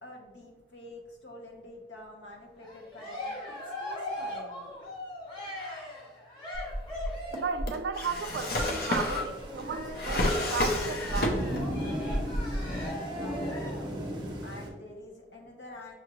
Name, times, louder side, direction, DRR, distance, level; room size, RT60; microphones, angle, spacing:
voice 1, 0.0-3.5 3.8-4.8 13.1-14.0 14.4-15.9, left 1 dB, 80° left, 1.0 m, -47 dB
Cheering, 2.6-7.6 8.3-13.9, left 1 dB, 25° left, 0.9 m, -40 dB
Drawer open or close, 6.5-11.7 12.0-12.9, left 1 dB, 55° left, 0.6 m, -30 dB
voice 2, 7.3-11.4, right 5 dB, 70° right, 0.3 m, -34 dB
Thunder / Rain, 8.2-14.7, equal, 25° right, 0.6 m, -37 dB
6.1 x 2.5 x 2.9 m
head